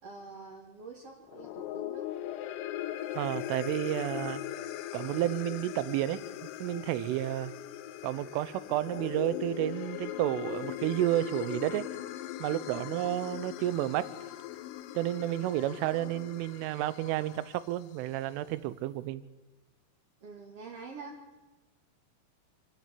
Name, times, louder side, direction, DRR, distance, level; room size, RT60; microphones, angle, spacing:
voice 1, 0.0-2.2 12.7-13.0 20.2-21.2, right 4 dB, 50° right, -2 dB, 1.9 m, -46 dB
sound 1, 1.2-17.7, left 13 dB, 90° left, 3.6 m, -40 dB
voice 2, 3.1-4.4 4.9-6.2 6.6-7.5 8.0-11.9 12.4-14.1 14.9-19.2, right 14 dB, 80° right, 15 dB, 3.3 m, -31 dB
27.5 x 10.5 x 9.9 m, 1.1 s
omnidirectional pair, 5.8 m